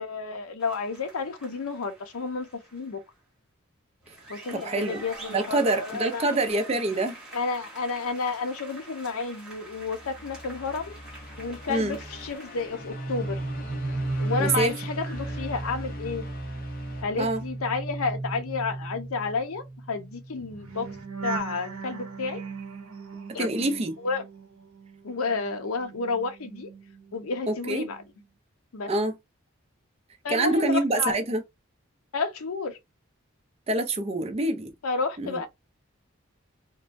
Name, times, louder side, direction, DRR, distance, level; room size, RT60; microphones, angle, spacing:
voice 1, 0.0-3.0 4.3-6.3 7.3-10.9 11.4-13.4 14.2-16.2 17.0-20.9 21.2-22.4 23.3-23.5 24.0-24.2 25.0-26.7 27.1-28.0 28.7-28.9 30.2-31.2 32.1-32.8 34.8-35.5, left 4 dB, 85° left, 0.6 m, -31 dB
sound 1, 0.6-3.0 4.0-12.9, right 2 dB, 5° right, 0.8 m, -46 dB
voice 2, 4.5-5.0 5.3-7.2 11.7-12.0 14.4-14.7 17.2-17.4 23.4-23.9 27.5-27.9 28.9-29.1 30.3-31.4 33.7-34.7 35.2-35.4, right 2 dB, 30° right, 0.4 m, -26 dB
sound 2, 9.6-17.9, equal, 40° left, 0.6 m, -42 dB
sound 3, 12.7-25.0 25.3-27.4 27.7-28.0, right 2 dB, 70° right, 0.7 m, -36 dB
3.1 x 2.2 x 2.5 m
head